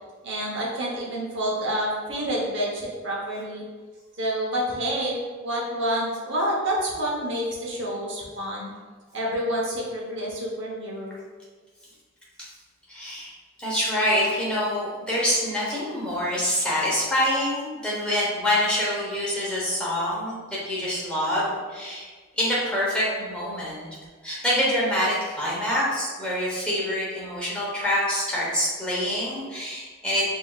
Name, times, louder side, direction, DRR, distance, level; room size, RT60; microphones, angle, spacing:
voice 1, 0.2-3.6 4.2-8.7 9.1-11.2, equal, 60° right, -3 dB, 1.0 m, -28 dB
voice 2, 12.9-13.3 13.6-22.1 22.4-23.9 24.2-30.2, left 1 dB, 5° left, -7 dB, 1.1 m, -26 dB
5.2 x 2.7 x 2.4 m, 1.4 s
head